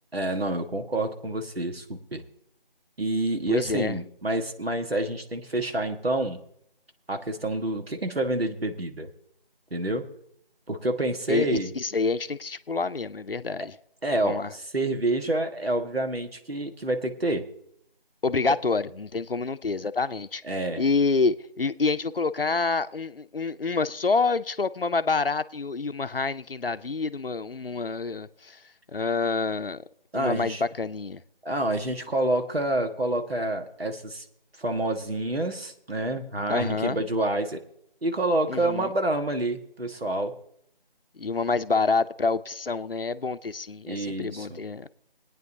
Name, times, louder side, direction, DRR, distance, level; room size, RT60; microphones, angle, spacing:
voice 1, 0.1-2.2 3.0-6.4 7.1-9.1 9.7-10.1 10.7-11.7 14.0-17.5 20.4-20.8 30.1-30.6 31.4-34.2 34.6-37.6 38.0-40.3 43.8-44.6, right 1 dB, 80° right, 1.6 m, -28 dB
voice 2, 3.5-4.0 11.3-13.8 14.2-14.5 18.2-20.4 20.8-28.6 28.9-29.8 30.1-31.2 36.5-37.0 38.5-38.9 41.2-44.9, left 4 dB, 70° left, 0.6 m, -27 dB
23.5 x 9.2 x 2.7 m
figure-of-eight pair, 180°, 30 cm